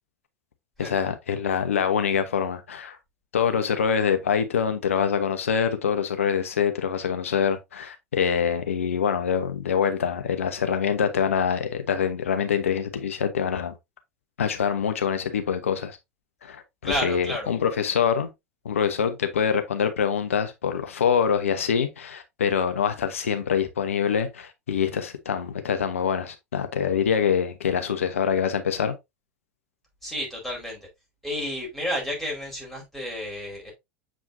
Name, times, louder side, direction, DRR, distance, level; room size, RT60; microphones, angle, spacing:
voice 1, 0.8-3.0 3.3-13.7 14.4-16.0 16.4-18.3 18.6-28.9, left 7 dB, 70° left, 1.0 m, -25 dB
voice 2, 16.8-17.5 30.0-30.9 31.2-33.7, left 1 dB, ahead, 4.4 m, -31 dB
7.5 x 4.9 x 2.6 m
figure-of-eight pair, 80°, 7 cm